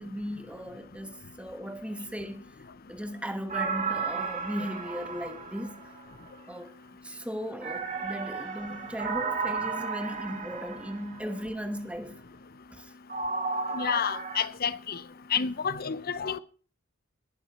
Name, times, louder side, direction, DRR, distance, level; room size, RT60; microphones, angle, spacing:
voice 1, 0.0-2.4 2.9-5.8 6.5-12.2 12.7-12.9 15.3-15.5, equal, 5° right, 1.2 m, -37 dB
sound 1, 3.5-6.3 7.6-11.4 13.1-14.4, right 5 dB, 40° right, 2.2 m, -34 dB
voice 2, 13.7-15.0 15.3-16.4, left 7 dB, 45° left, 0.7 m, -29 dB
20.5 x 7.2 x 4.2 m
head